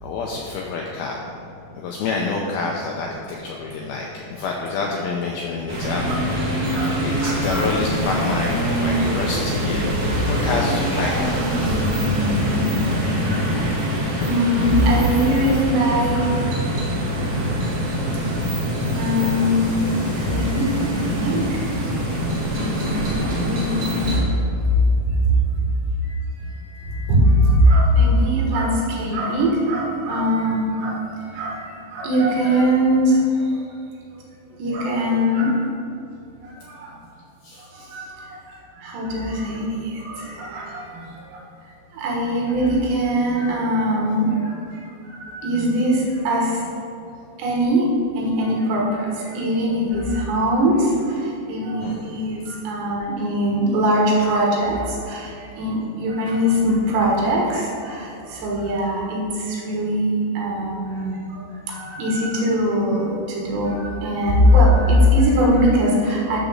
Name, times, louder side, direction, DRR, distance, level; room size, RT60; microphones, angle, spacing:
voice 1, 0.0-1.3 1.8-9.9 10.3-11.5 13.5-14.0 37.4-37.7 40.7-40.8 47.1-47.2 51.8-52.0, left 4 dB, 85° left, -1 dB, 2.1 m, -28 dB
sound 1, 5.7-24.2, equal, 40° right, 2.4 m, -24 dB
voice 2, 6.7-7.7 10.3-10.4 11.0-11.2 11.5-11.7 12.9-13.5 13.8-13.9 14.3-16.3 18.9-21.6 22.5-24.3 25.2-25.4 26.8-31.0 31.3-33.2 34.6-35.6 36.7-36.9 37.7-38.4 38.8-41.1 41.3-41.4 41.9-44.8 45.1-46.6 47.4-47.9 48.2-61.4 61.7-66.4, equal, 75° right, -3 dB, 3.8 m, -21 dB
11.0 x 5.0 x 6.4 m, 2.6 s
omnidirectional pair, 5.2 m